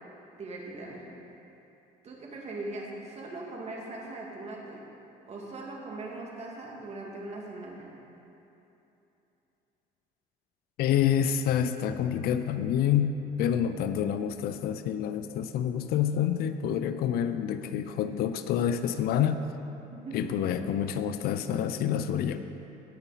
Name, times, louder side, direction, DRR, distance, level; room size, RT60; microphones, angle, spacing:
voice 1, 0.2-1.1 2.0-4.8 5.3-7.9 19.9-20.3, right 2 dB, 40° right, -2 dB, 2.0 m, -40 dB
voice 2, 10.8-19.4 20.1-22.4, left 9 dB, 70° left, 10 dB, 0.5 m, -28 dB
17.0 x 5.7 x 4.1 m, 3.0 s
cardioid pair, 105°, 17 cm